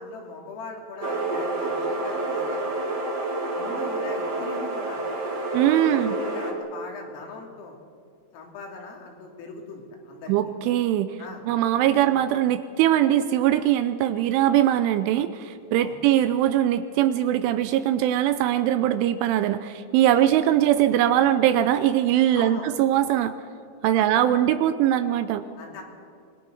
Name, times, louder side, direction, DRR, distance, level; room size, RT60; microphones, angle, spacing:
voice 1, 0.0-2.9 3.5-5.0 5.9-7.8 8.3-10.6 11.2-11.4 11.9-12.1 15.8-16.0 20.1-20.3 22.4-22.7 23.8-24.1 25.6-25.8, left 3 dB, 80° left, 1 dB, 5.5 m, -40 dB
sound 1, 1.0-6.5, right 2 dB, 60° right, 1.0 m, -28 dB
voice 2, 5.5-6.2 10.3-11.2 11.5-23.3 23.8-25.4, right 12 dB, 80° right, 11 dB, 2.9 m, -21 dB
25.5 x 21.0 x 6.4 m, 2.4 s
omnidirectional pair, 6.0 m